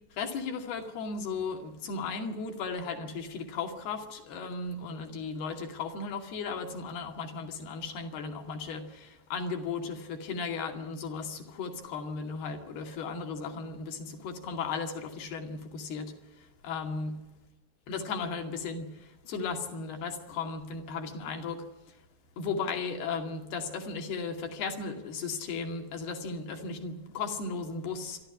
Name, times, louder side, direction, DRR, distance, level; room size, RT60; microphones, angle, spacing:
voice 1, 0.2-17.2 17.9-21.6 22.4-28.2, left 4 dB, 65° left, 4 dB, 4.1 m, -36 dB
27.0 x 12.5 x 9.9 m, 1.1 s
omnidirectional pair, 5.1 m